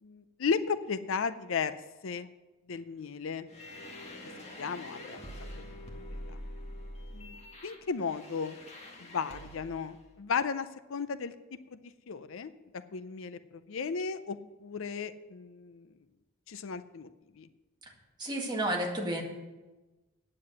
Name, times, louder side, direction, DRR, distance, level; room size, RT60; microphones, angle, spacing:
voice 1, 0.0-1.8 2.0-2.3 2.7-3.5 4.6-5.2 6.3-6.4 7.1-7.4 7.6-8.6 9.0-11.3 11.7-11.8 12.1-15.9 16.5-17.1 17.4-17.5, left 5 dB, 65° left, 13 dB, 0.5 m, -35 dB
sound 1, 3.5-9.9, left 1 dB, 30° left, 1.8 m, -45 dB
voice 2, 18.2-19.2, right 1 dB, 20° right, -1 dB, 1.9 m, -31 dB
9.4 x 7.7 x 7.8 m, 1.1 s
head